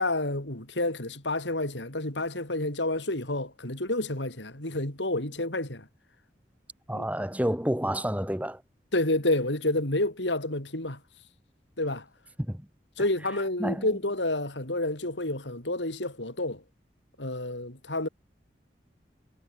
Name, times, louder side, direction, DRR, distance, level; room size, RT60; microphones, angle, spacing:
voice 1, 0.0-5.9 6.9-7.1 8.9-11.0 11.8-12.1 13.0-16.6 17.2-18.1, left 2 dB, 90° left, 5.7 m, -29 dB
voice 2, 6.9-8.6 12.4-12.7 13.6-13.9, equal, 10° right, 2.9 m, -29 dB
head